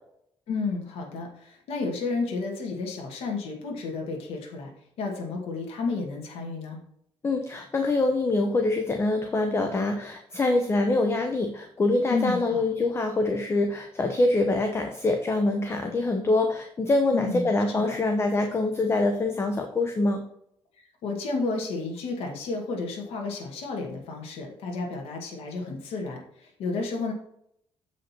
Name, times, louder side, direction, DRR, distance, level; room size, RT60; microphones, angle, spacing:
voice 1, 0.5-4.7 5.0-6.8 12.1-12.6 17.1-17.5 17.8-18.0 20.8-27.1, left 3 dB, 85° left, 1 dB, 2.0 m, -31 dB
voice 2, 7.2-20.2, left 2 dB, 25° left, 5 dB, 0.9 m, -25 dB
7.6 x 5.2 x 4.4 m, 0.72 s
cardioid pair, 115°, 10 cm